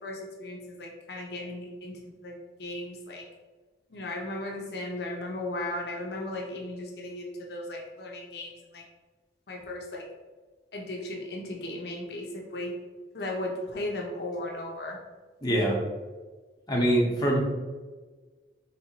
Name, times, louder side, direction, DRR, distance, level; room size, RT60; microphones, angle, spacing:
voice 1, 0.0-3.2 3.9-8.8 9.5-10.0 10.7-12.7 13.1-15.0, left 1 dB, 60° left, 0 dB, 0.6 m, -36 dB
voice 2, 15.4-15.8 16.7-17.4, right 1 dB, 25° left, -3 dB, 0.7 m, -24 dB
4.2 x 3.2 x 2.8 m, 1.4 s
head